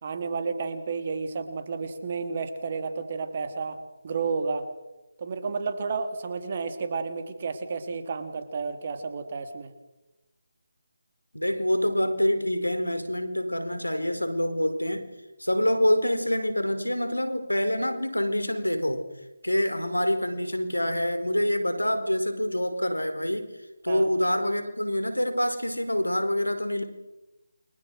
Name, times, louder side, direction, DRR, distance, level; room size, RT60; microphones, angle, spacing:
voice 1, 0.0-3.8 4.0-4.7 5.2-9.7 23.9-24.1, right 4 dB, 35° right, 7 dB, 3.4 m, -31 dB
voice 2, 11.3-15.1 15.4-19.0 19.4-23.5 23.8-26.8, left 1 dB, 90° left, 9 dB, 4.5 m, -26 dB
29.0 x 25.0 x 6.5 m, 1.0 s
figure-of-eight pair, 155°, 0 cm